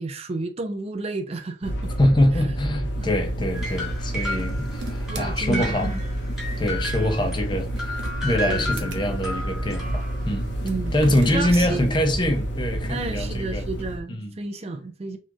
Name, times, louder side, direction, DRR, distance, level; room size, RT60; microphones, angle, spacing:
voice 1, 0.0-1.9 3.0-3.1 5.1-5.9 6.6-6.7 8.5-8.7 10.6-10.9 11.2-12.1 12.9-15.2, right 3 dB, 35° right, 0.4 m, -31 dB
sound 1, 1.6-14.0, right 1 dB, 80° left, 0.9 m, -30 dB
voice 2, 2.0-6.0 6.6-10.5 10.9-13.7 14.1-14.4, left 1 dB, 25° left, 0.7 m, -24 dB
sound 2, 3.5-7.4 7.8-10.4, equal, ahead, 1.7 m, -34 dB
sound 3, 4.3-5.3 7.5-9.0 10.6-11.6, right 3 dB, 85° right, 0.9 m, -40 dB
4.1 x 3.1 x 3.7 m
head